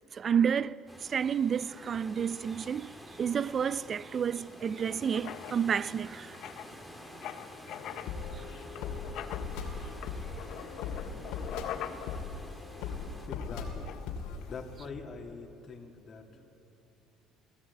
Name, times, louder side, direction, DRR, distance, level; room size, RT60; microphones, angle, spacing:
voice 1, 0.1-6.4 8.3-8.4, right 7 dB, 40° right, 0.4 m, -30 dB
sound 1, 0.9-13.3, equal, 10° right, 2.4 m, -49 dB
Writing, 4.5-14.9, left 10 dB, 65° left, 1.1 m, -45 dB
sound 2, 7.7-14.4, left 5 dB, 85° left, 2.5 m, -39 dB
voice 2, 13.3-14.1 14.5-16.4, left 4 dB, 40° left, 2.5 m, -44 dB
22.5 x 16.0 x 8.4 m
cardioid pair, 100°, 0 cm